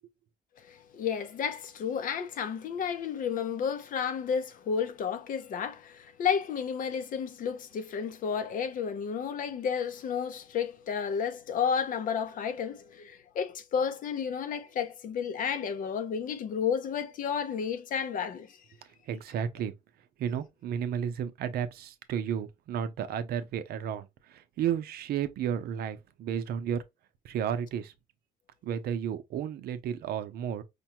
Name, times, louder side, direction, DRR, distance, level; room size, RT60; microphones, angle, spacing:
voice 1, 0.7-18.6, left 7 dB, 55° left, 0.6 m, -32 dB
voice 2, 19.1-19.7 20.2-26.8 27.2-27.9 28.6-30.6, right 8 dB, 65° right, 0.6 m, -32 dB
5.0 x 2.3 x 2.8 m
cardioid pair, 110°, 17 cm